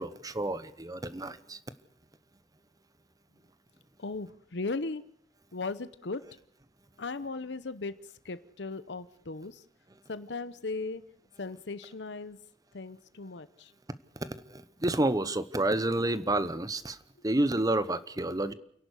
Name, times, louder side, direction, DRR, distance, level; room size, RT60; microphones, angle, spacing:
voice 1, 0.0-1.6 14.2-17.0 17.2-18.5, right 1 dB, 20° right, 1.0 m, -29 dB
voice 2, 4.0-5.0 5.5-6.2 7.0-7.9 8.2-9.6 10.1-11.0 11.4-12.4 12.7-13.7, left 3 dB, 70° left, 0.9 m, -37 dB
29.0 x 11.0 x 8.3 m
head